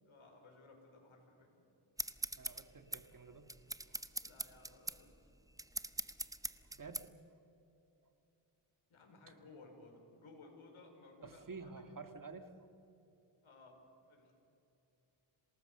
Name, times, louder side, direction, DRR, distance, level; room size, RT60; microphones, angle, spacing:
voice 1, 0.0-1.6 4.2-5.3 8.9-11.8 13.4-14.3, left 3 dB, 75° left, 2 dB, 5.0 m, -59 dB
sound 1, 2.0-7.1, right 2 dB, 5° right, 0.7 m, -43 dB
voice 2, 2.4-3.5 6.7-7.4 9.3-9.4 11.2-12.5, right 4 dB, 40° right, 7 dB, 1.8 m, -50 dB
27.0 x 19.0 x 6.7 m, 2.9 s
cardioid pair, 90°, 50 cm